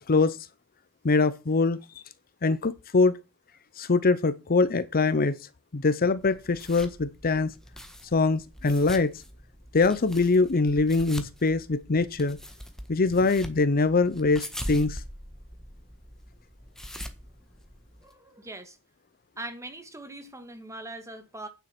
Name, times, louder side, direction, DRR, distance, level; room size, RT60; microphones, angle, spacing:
voice 1, 0.1-0.4 1.0-1.8 2.4-3.2 3.8-5.4 5.7-7.5 8.1-9.1 9.7-12.4 12.9-15.0, left 3 dB, 40° left, 0.7 m, -23 dB
sound 1, 6.2-18.1, equal, ahead, 1.4 m, -43 dB
voice 2, 18.0-18.8 19.4-21.5, right 2 dB, 15° right, 1.7 m, -41 dB
9.4 x 7.4 x 6.0 m
head